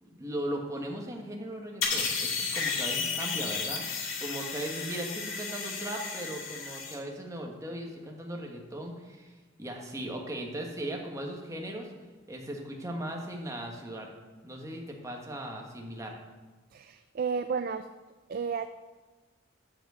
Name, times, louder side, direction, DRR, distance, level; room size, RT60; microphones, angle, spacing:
voice 1, 0.0-3.8 4.2-11.9 12.3-14.1 14.4-16.2, right 1 dB, 15° right, 0 dB, 1.4 m, -38 dB
sound 1, 1.8-6.9, left 5 dB, 80° left, 1.9 m, -33 dB
voice 2, 16.7-17.8 18.3-18.7, right 6 dB, 45° right, 10 dB, 0.3 m, -32 dB
7.7 x 7.2 x 6.8 m, 1.3 s
head